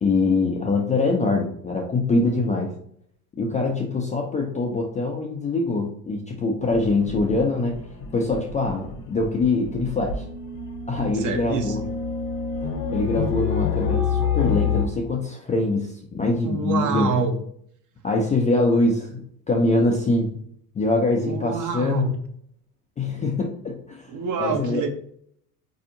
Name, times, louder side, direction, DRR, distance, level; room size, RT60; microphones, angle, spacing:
voice 1, 0.0-2.7 3.4-7.8 8.1-10.2 10.9-11.9 12.9-17.1 18.0-20.4 20.7-22.1 23.0-24.1 24.4-24.8, left 2 dB, 15° left, 0 dB, 0.3 m, -23 dB
sound 1, 6.7-14.9, left 6 dB, 35° left, 0.8 m, -28 dB
voice 2, 11.1-11.8 16.4-17.4 21.2-22.2 24.1-24.9, right 4 dB, 40° right, 5 dB, 0.7 m, -26 dB
4.1 x 2.7 x 2.6 m, 0.67 s
hypercardioid pair, 70°, 49 cm